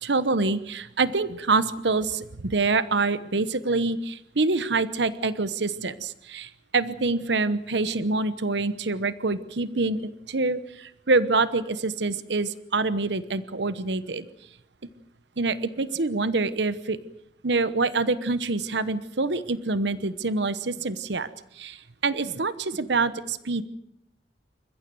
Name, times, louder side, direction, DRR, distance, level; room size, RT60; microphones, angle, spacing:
voice 1, 0.0-14.3 15.4-17.0 17.4-21.3 21.5-23.6, right 3 dB, 75° right, 14 dB, 1.0 m, -26 dB
28.5 x 15.0 x 7.8 m, 0.78 s
head